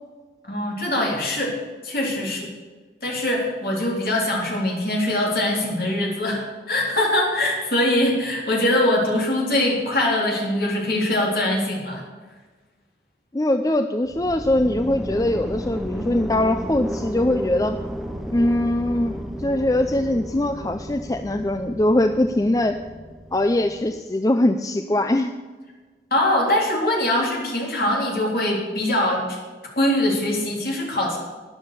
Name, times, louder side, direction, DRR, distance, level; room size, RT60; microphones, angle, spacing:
voice 1, 0.4-2.5 3.0-12.0 26.1-29.4 29.8-31.2, left 1 dB, 55° left, -2 dB, 3.6 m, -22 dB
voice 2, 13.3-17.8 18.3-22.8 23.3-25.3, left 1 dB, 20° left, 8 dB, 0.4 m, -22 dB
sound 1, 14.1-24.0, equal, ahead, 0.8 m, -33 dB
12.5 x 10.0 x 6.7 m, 1.4 s
head